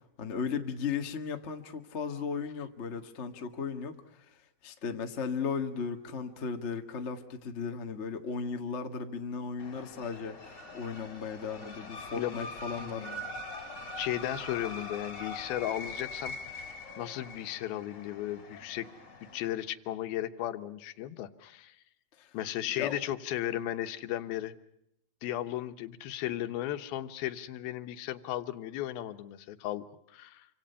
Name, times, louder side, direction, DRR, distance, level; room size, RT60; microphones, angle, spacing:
voice 1, 0.2-4.0 4.6-13.1 22.2-22.3 22.8-23.0, left 5 dB, 55° left, 5 dB, 0.7 m, -36 dB
sound 1, 9.6-19.5, left 2 dB, 30° left, 3.5 m, -43 dB
voice 2, 11.6-12.4 12.8-13.3 14.0-16.7 17.0-18.9 19.3-21.8 22.3-24.5 25.2-30.5, left 13 dB, 80° left, 9 dB, 2.9 m, -35 dB
27.5 x 25.5 x 5.6 m, 0.78 s
omnidirectional pair, 4.3 m